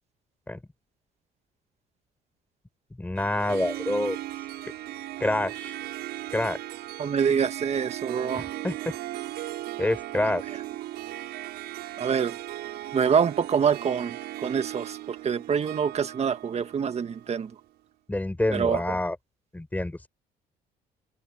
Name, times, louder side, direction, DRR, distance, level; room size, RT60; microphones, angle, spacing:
voice 1, 3.0-4.2 5.2-5.8 6.3-6.6 8.3-8.8 9.8-10.4 18.1-19.2 19.5-20.1, left 1 dB, 10° left, 5.3 m, -27 dB
Harp, 3.2-17.6, right 15 dB, 80° right, 6.1 m, -37 dB
voice 2, 7.0-8.4 12.0-12.4 12.9-17.5 18.5-18.8, right 7 dB, 40° right, 1.8 m, -26 dB
open air
cardioid pair, 110°, 17 cm